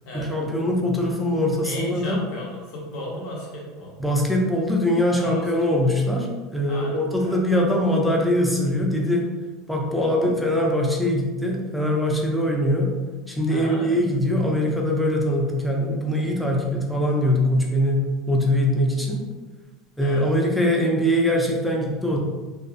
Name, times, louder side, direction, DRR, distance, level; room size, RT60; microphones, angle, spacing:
voice 1, 0.1-2.2 4.0-9.3 9.7-12.9 13.3-19.2 20.0-22.2, left 1 dB, ahead, -1 dB, 0.4 m, -22 dB
voice 2, 1.6-4.0 5.2-5.4 6.1-6.2 6.7-7.4 9.9-10.1 13.5-13.9 20.0-20.3, left 1 dB, 65° left, -4 dB, 0.9 m, -35 dB
2.4 x 2.3 x 2.5 m, 1.3 s
supercardioid pair, 130°, 0 cm